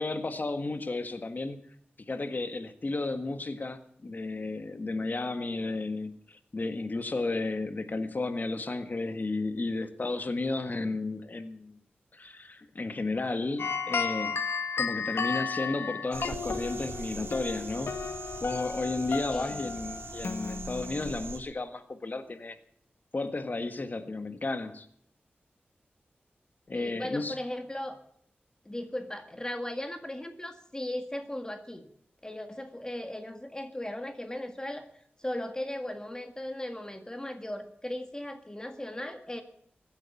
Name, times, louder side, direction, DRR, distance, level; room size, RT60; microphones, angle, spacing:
voice 1, 0.0-1.6 2.1-11.8 12.1-14.4 14.8-18.0 18.4-22.6 23.1-24.9 26.7-27.4, left 3 dB, 45° left, 10 dB, 1.7 m, -33 dB
sound 1, 13.6-21.1, left 5 dB, 80° left, 1.5 m, -34 dB
sound 2, 16.1-21.4, right 3 dB, 80° right, 2.1 m, -42 dB
voice 2, 19.3-19.8 26.7-28.0 28.7-31.9 32.2-34.9 35.2-39.4, left 1 dB, 20° left, 7 dB, 1.9 m, -37 dB
16.0 x 10.0 x 8.4 m, 0.66 s
wide cardioid pair, 70°, 4 cm